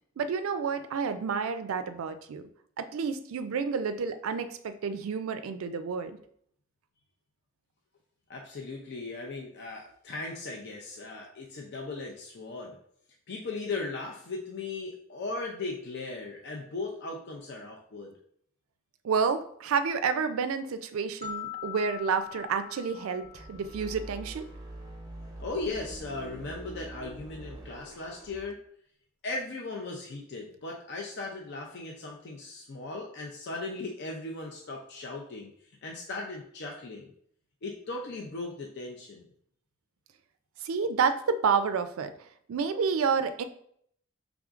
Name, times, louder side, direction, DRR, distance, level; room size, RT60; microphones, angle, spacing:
voice 1, 0.2-2.4 2.8-6.1 19.0-24.5 40.6-42.1 42.5-43.4, right 5 dB, 80° right, 10 dB, 0.4 m, -29 dB
voice 2, 8.3-12.8 13.3-18.1 25.4-28.6 29.2-35.5 35.8-37.1 37.6-39.3, left 3 dB, 55° left, 0 dB, 0.5 m, -37 dB
sound 1, 21.2-24.3, left 10 dB, 40° left, 1.0 m, -42 dB
sound 2, 23.2-28.4, right 2 dB, 20° right, 0.6 m, -44 dB
4.9 x 3.5 x 2.4 m, 0.66 s
head